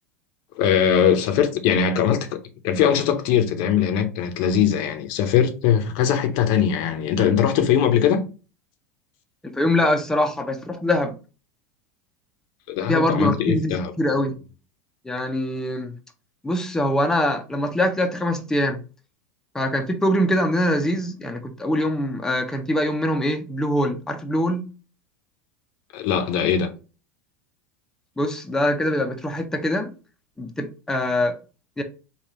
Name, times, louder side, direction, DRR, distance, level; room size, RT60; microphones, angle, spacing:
voice 1, 0.6-2.4 2.6-8.2 12.7-13.9 25.9-26.7, left 8 dB, 60° left, 0.7 m, -21 dB
voice 2, 9.4-11.1 12.9-14.4 15.0-15.9 16.4-18.8 19.5-24.7 28.2-29.9 30.4-31.4 31.8-31.9, left 1 dB, 5° left, 0.6 m, -23 dB
3.5 x 2.3 x 4.1 m
hypercardioid pair, 100°, 8 cm